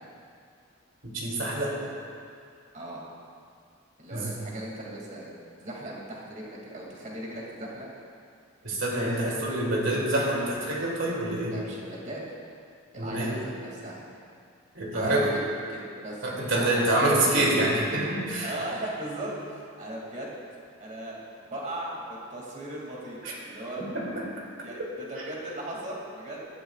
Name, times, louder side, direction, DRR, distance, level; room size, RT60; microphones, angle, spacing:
voice 1, 1.0-1.8 4.1-4.3 8.6-11.5 12.9-13.4 14.7-15.3 16.2-18.5 23.2-23.4 23.8-24.3, right 1 dB, 70° right, -4 dB, 2.8 m, -26 dB
voice 2, 4.0-5.3 5.6-7.9 11.5-12.2 12.9-14.0 14.9-15.4 15.7-16.3 16.5-17.2 18.4-20.4 20.8-23.8 24.6-26.4, right 1 dB, 40° right, -3 dB, 2.5 m, -38 dB
18.0 x 12.5 x 2.4 m, 2.3 s
head